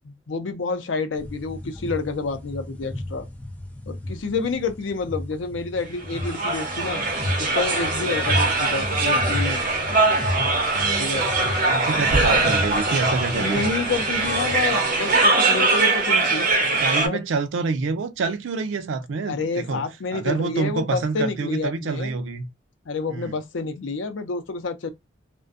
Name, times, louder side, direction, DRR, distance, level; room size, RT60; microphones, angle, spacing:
voice 1, 0.0-3.3 3.9-7.0 7.4-9.6 11.0-11.3 13.3-16.5 17.0-17.2 19.3-22.1 22.9-24.9, left 4 dB, 85° left, 0.5 m, -29 dB
sound 1, 1.2-14.6, left 1 dB, 10° left, 0.5 m, -33 dB
sound 2, 6.1-17.1, right 3 dB, 50° right, 0.7 m, -22 dB
voice 2, 11.7-13.9 16.1-16.2 16.8-19.9 20.1-22.5 23.1-23.4, right 4 dB, 85° right, 0.4 m, -27 dB
2.5 x 2.1 x 2.4 m
head